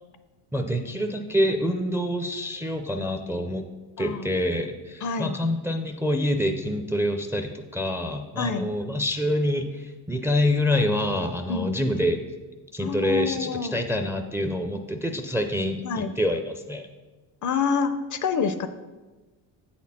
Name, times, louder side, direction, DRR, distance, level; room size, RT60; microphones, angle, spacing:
voice 1, 0.5-3.6 4.0-12.2 12.7-16.9, left 1 dB, 5° right, 6 dB, 0.4 m, -26 dB
voice 2, 4.0-4.3 5.0-5.4 8.4-8.7 11.5-11.7 12.8-13.8 15.8-16.1 17.4-18.7, left 5 dB, 45° left, 10 dB, 0.5 m, -27 dB
8.0 x 4.3 x 4.1 m, 1.2 s
cardioid pair, 85°, 44 cm